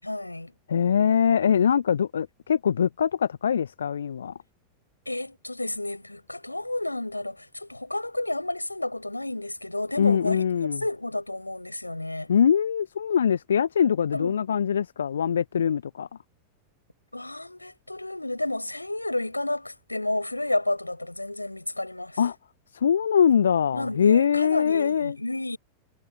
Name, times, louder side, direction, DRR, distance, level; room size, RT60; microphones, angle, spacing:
voice 1, 0.0-0.5 5.1-12.3 14.1-14.4 17.1-22.2 23.7-25.6, left 1 dB, 85° left, 7.4 m, -31 dB
voice 2, 0.7-4.4 10.0-10.8 12.3-16.1 22.2-22.4 22.7-25.2, left 7 dB, 70° left, 0.8 m, -23 dB
figure-of-eight pair, 90°, 0 cm